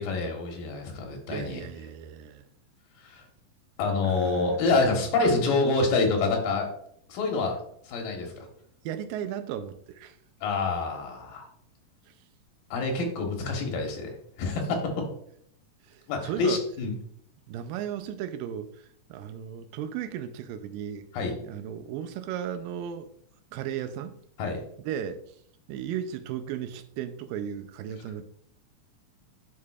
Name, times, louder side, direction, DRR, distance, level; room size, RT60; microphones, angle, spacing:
voice 1, 0.0-1.6 3.0-3.2 3.8-6.7 7.1-7.6 7.8-8.5 10.4-11.5 12.7-15.0 16.1-16.9 21.1-21.4 24.4-24.6, left 3 dB, 90° left, 2 dB, 3.0 m, -27 dB
voice 2, 1.3-2.4 4.0-4.9 8.4-8.5 8.8-10.2 12.1-12.2 15.8-16.6 17.5-21.1 21.4-23.1 23.5-24.2 24.8-25.2 25.7-28.2, right 9 dB, 90° right, 10 dB, 2.3 m, -35 dB
10.0 x 4.7 x 2.4 m, 0.67 s
omnidirectional pair, 3.9 m